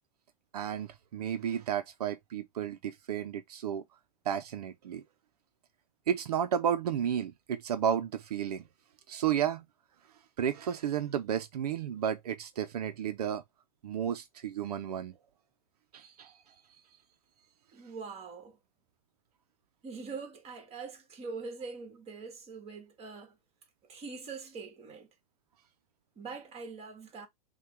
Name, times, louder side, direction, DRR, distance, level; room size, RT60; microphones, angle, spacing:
voice 1, 0.5-3.8 4.3-5.0 6.1-8.6 9.1-9.6 10.4-13.4 13.8-15.1 15.9-16.4, right 9 dB, 85° right, 0.6 m, -32 dB
voice 2, 17.7-18.6 19.8-23.4 23.9-25.1 26.2-27.3, right 4 dB, 30° right, 1.8 m, -43 dB
5.7 x 2.3 x 3.3 m
hypercardioid pair, 115°, 20 cm